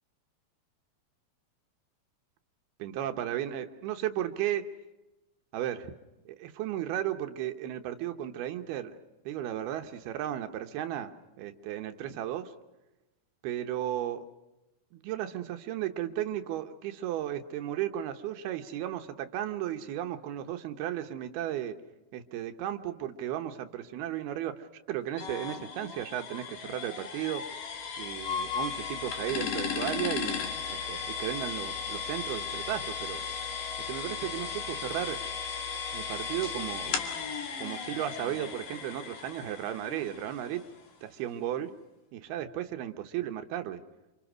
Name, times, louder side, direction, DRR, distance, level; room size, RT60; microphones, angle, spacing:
voice 1, 2.8-4.7 5.5-5.9 6.3-8.9 9.3-11.1 11.4-12.5 13.4-14.2 14.9-21.7 22.1-27.4 28.0-30.4 30.7-33.2 33.9-35.2 35.9-37.0 37.6-40.6 41.0-41.7 42.1-43.8, right 12 dB, 85° right, 7 dB, 3.0 m, -34 dB
sound 1, 25.2-40.9, left 6 dB, 60° left, 3.7 m, -36 dB
29.0 x 27.0 x 6.2 m, 1.0 s
omnidirectional pair, 4.4 m